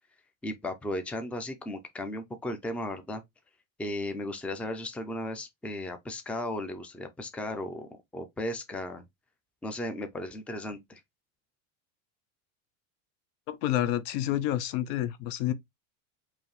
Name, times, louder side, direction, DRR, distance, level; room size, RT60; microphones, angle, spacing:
voice 1, 0.4-3.2 3.8-9.0 9.6-11.0, left 1 dB, 5° left, 0.5 m, -35 dB
voice 2, 13.5-15.5, left 13 dB, 65° left, 0.7 m, -29 dB
4.6 x 3.0 x 3.2 m
supercardioid pair, 120°, 42 cm